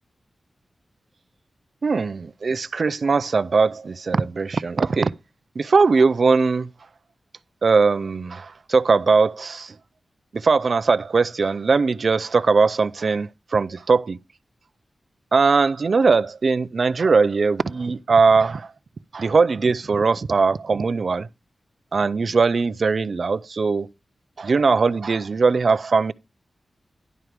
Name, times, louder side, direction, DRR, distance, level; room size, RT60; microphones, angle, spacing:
voice 1, 1.8-5.1 5.6-6.7 7.6-9.7 10.3-14.2 15.3-18.7 19.1-21.3 21.9-23.9 24.4-26.1, right 4 dB, 55° right, 0.4 m, -20 dB
11.0 x 4.6 x 5.0 m
wide cardioid pair, 125°, 0 cm